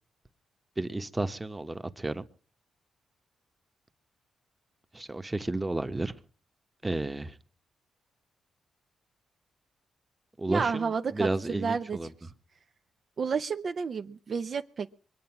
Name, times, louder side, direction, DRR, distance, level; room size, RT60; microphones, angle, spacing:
voice 1, 0.8-2.2 4.9-6.1 6.8-7.3 10.4-12.1, right 2 dB, 20° right, 10 dB, 1.2 m, -32 dB
voice 2, 10.5-12.0 13.2-15.0, right 5 dB, 55° right, 8 dB, 0.7 m, -31 dB
23.0 x 8.7 x 6.0 m, 0.42 s
cardioid pair, 70°, 0 cm